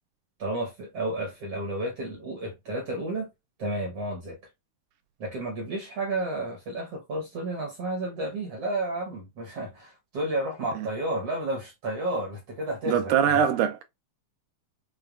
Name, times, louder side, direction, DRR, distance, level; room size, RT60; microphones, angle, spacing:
voice 1, 0.4-3.3 3.6-4.4 5.2-13.3, right 1 dB, 65° right, 1.5 m, -31 dB
voice 2, 12.9-13.8, right 8 dB, 80° right, 2.0 m, -23 dB
6.3 x 2.3 x 2.4 m
omnidirectional pair, 4.0 m